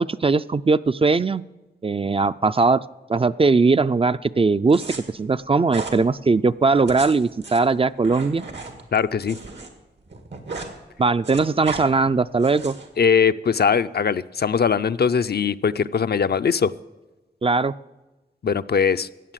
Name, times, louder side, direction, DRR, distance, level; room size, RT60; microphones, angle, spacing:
voice 1, 0.0-1.4 1.8-2.8 3.1-4.8 5.1-8.4 11.0-12.7 17.4-17.8, right 4 dB, 30° right, 14 dB, 0.3 m, -19 dB
sound 1, 4.7-5.0 5.7-6.0 6.7-9.7 10.0-10.7 11.0-11.8 12.4-12.9, right 3 dB, 85° right, 1.9 m, -35 dB
voice 2, 8.9-9.4 13.0-16.7 18.4-19.1, left 6 dB, 65° left, 12 dB, 0.5 m, -20 dB
15.0 x 9.0 x 7.4 m, 1.1 s
wide cardioid pair, 95°, 18 cm